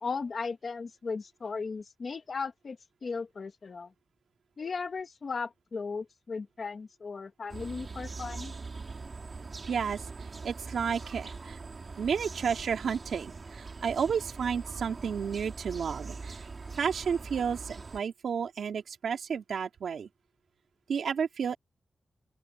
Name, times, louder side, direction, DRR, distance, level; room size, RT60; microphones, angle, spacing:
voice 1, 0.0-3.9 4.6-8.5, left 4 dB, 45° left, 2.1 m, -36 dB
sound 1, 7.5-18.0, right 4 dB, 35° right, 4.5 m, -42 dB
voice 2, 9.7-10.0 10.4-11.6 12.0-16.4 16.8-20.1 20.9-21.6, right 6 dB, 85° right, 3.3 m, -31 dB
open air
wide cardioid pair, 170°, 0 cm